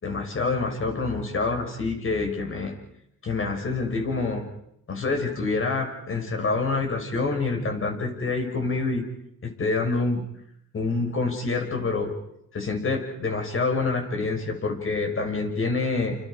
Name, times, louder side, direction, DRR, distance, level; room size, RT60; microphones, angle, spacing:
voice 1, 0.0-2.7 3.2-4.5 4.9-9.0 9.4-10.2 10.7-12.1 12.5-16.2, left 3 dB, 45° left, 3 dB, 5.9 m, -27 dB
28.5 x 28.5 x 5.1 m, 0.76 s
cardioid pair, 90°, 30 cm